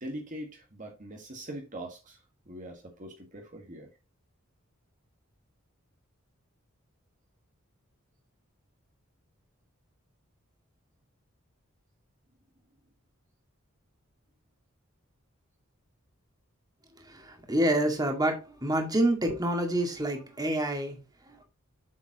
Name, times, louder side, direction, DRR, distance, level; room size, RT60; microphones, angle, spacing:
voice 1, 0.0-3.9, right 1 dB, 40° right, 1.7 m, -42 dB
voice 2, 17.0-21.4, right 1 dB, 20° right, 2.0 m, -28 dB
8.2 x 7.2 x 2.9 m
head